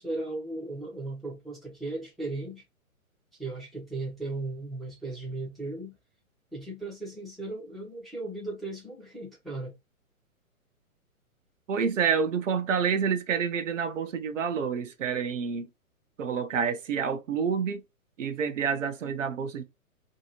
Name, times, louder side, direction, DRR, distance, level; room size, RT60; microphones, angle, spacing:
voice 1, 0.0-2.6 3.4-5.9 6.5-9.7, right 2 dB, ahead, 0.7 m, -36 dB
voice 2, 11.7-15.7 16.2-17.8 18.2-19.6, right 6 dB, 60° right, 0.7 m, -28 dB
2.7 x 2.6 x 2.8 m
figure-of-eight pair, 125°, 43 cm